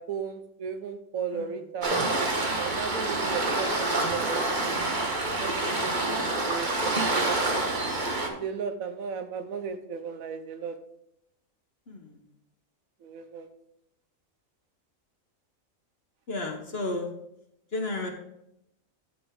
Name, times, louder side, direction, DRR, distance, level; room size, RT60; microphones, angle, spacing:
voice 1, 0.0-2.0 2.5-4.8 5.4-7.4 8.3-10.8 13.0-13.5, right 6 dB, 90° right, 8 dB, 1.3 m, -35 dB
Waves surf, 1.8-8.3, right 2 dB, 35° right, 1.4 m, -27 dB
voice 2, 11.9-12.2 16.3-17.1 17.7-18.1, left 2 dB, 50° left, 3 dB, 1.4 m, -32 dB
13.5 x 5.1 x 3.7 m, 0.79 s
omnidirectional pair, 1.4 m